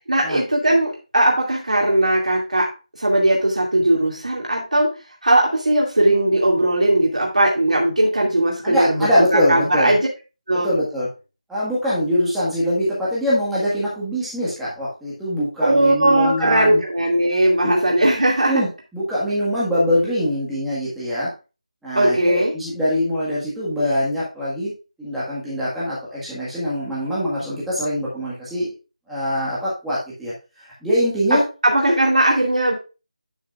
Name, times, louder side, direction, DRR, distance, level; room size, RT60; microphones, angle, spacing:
voice 1, 0.1-2.7 3.0-4.9 5.2-9.1 9.3-10.1 10.5-10.7 15.6-18.6 21.9-22.5 31.3-32.7, right 1 dB, 85° right, -2 dB, 2.4 m, -18 dB
voice 2, 8.6-9.9 10.5-11.1 11.5-16.8 17.6-17.8 18.4-21.3 21.8-24.7 25.0-28.7 29.1-30.3 30.6-31.4, equal, ahead, -10 dB, 1.7 m, -23 dB
11.5 x 6.0 x 2.5 m, 0.30 s
figure-of-eight pair, 175°, 4 cm